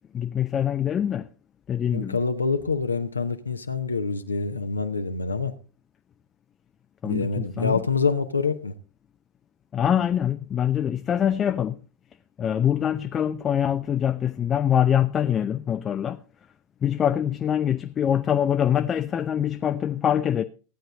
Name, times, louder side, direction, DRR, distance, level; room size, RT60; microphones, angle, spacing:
voice 1, 0.1-1.3 1.7-2.2 7.0-7.8 9.7-11.8 12.4-16.2 16.8-20.4, left 9 dB, 25° left, 0.5 m, -24 dB
voice 2, 1.9-5.5 7.0-8.7, left 4 dB, 80° left, 0.8 m, -26 dB
15.0 x 9.1 x 3.9 m
figure-of-eight pair, 90°, 0 cm